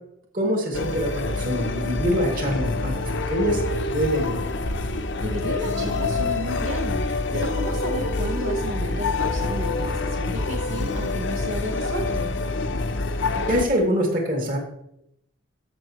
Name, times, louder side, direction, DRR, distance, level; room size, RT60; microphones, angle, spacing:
voice 1, 0.3-3.6 3.9-4.4 13.5-14.6, equal, 45° right, 0 dB, 2.5 m, -24 dB
sound 1, 0.7-13.7, left 2 dB, 60° left, 0.7 m, -26 dB
voice 2, 4.8-12.3, equal, 75° right, 1 dB, 1.2 m, -33 dB
14.5 x 6.4 x 3.0 m, 0.76 s
head